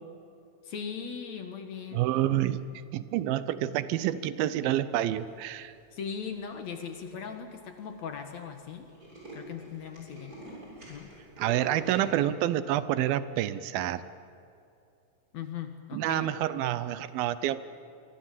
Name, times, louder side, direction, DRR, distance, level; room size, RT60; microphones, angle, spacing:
voice 1, 0.6-2.1 5.9-8.9 9.3-10.4 10.9-11.1 15.3-16.3 16.6-16.7, left 7 dB, 55° left, 6 dB, 2.4 m, -39 dB
voice 2, 1.9-2.7 2.9-5.7 11.4-14.0 15.9-17.6, right 12 dB, 80° right, 14 dB, 2.6 m, -28 dB
Tools, 6.1-6.5 7.1-7.2 7.4-7.5 7.8-8.0 8.3-8.4 8.7-12.1, right 1 dB, 25° right, 7.9 m, -46 dB
27.0 x 23.0 x 7.5 m, 2.6 s
omnidirectional pair, 4.2 m